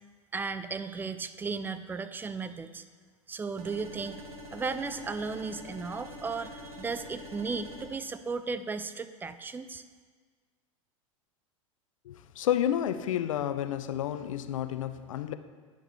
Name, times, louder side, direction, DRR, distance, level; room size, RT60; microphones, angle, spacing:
voice 1, 0.3-2.8 3.3-4.2 4.5-9.8, right 4 dB, 10° right, 0.3 m, -35 dB
sound 1, 3.6-7.9, left 1 dB, 80° right, 1.5 m, -45 dB
voice 2, 12.1-15.3, left 10 dB, 75° left, 0.5 m, -30 dB
9.8 x 6.5 x 3.1 m
hypercardioid pair, 95°, 17 cm